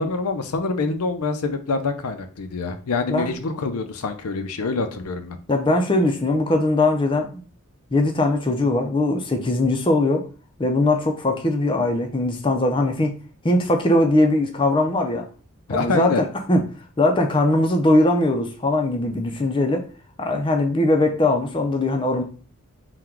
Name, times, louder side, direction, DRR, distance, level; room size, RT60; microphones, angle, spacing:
voice 1, 0.0-5.4 15.7-16.2, left 3 dB, 85° left, 8 dB, 0.5 m, -25 dB
voice 2, 5.5-7.4 7.9-10.3 10.6-13.1 13.4-15.3 15.7-16.6 17.0-19.8 20.2-22.2, left 2 dB, 20° left, 3 dB, 0.5 m, -20 dB
3.8 x 2.2 x 4.4 m, 0.37 s
head